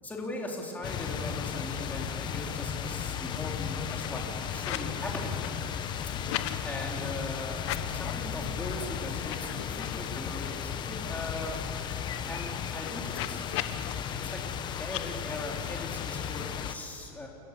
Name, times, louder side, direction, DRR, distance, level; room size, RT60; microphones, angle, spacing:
voice 1, 0.0-5.3 6.0-6.1 6.6-11.6 12.3-13.4 14.2-14.4 14.8-17.3, left 2 dB, 10° left, -1 dB, 3.8 m, -39 dB
sound 1, 0.8-16.8, left 8 dB, 30° left, 1.2 m, -35 dB
sound 2, 1.5-1.6 1.9-2.5 2.9-4.9 5.2-6.6 7.5-8.3 8.7-8.8 9.2-10.5 10.9-11.0 11.2-13.9 14.8-15.0, left 14 dB, 70° left, 1.3 m, -40 dB
29.5 x 15.0 x 8.3 m, 2.5 s
supercardioid pair, 145°, 15 cm